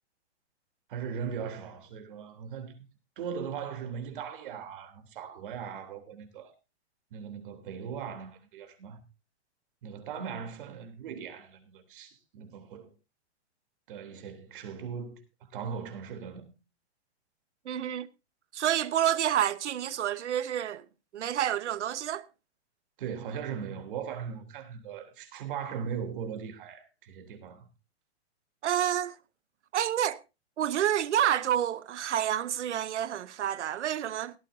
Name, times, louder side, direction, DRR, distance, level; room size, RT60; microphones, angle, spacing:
voice 1, 0.9-2.8 3.2-6.5 7.1-9.0 9.8-12.9 13.9-15.2 15.5-16.5 23.0-27.7, right 7 dB, 50° right, 3.4 m, -39 dB
voice 2, 17.6-18.1 18.5-20.8 21.1-22.2 28.6-29.1 29.7-30.2 30.6-34.3, right 10 dB, 80° right, 1.1 m, -28 dB
17.0 x 13.5 x 2.7 m
hypercardioid pair, 165°, 34 cm